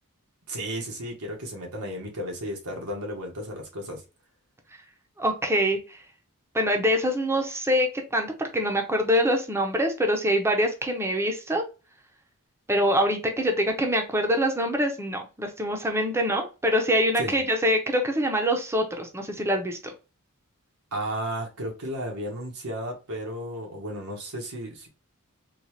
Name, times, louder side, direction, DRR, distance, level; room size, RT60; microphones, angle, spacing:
voice 1, 0.5-4.0 17.2-17.4 20.9-24.9, equal, 90° right, 1.4 m, -33 dB
voice 2, 5.2-6.0 6.5-11.6 12.7-19.9, equal, 10° right, 0.7 m, -25 dB
3.8 x 2.4 x 3.1 m
head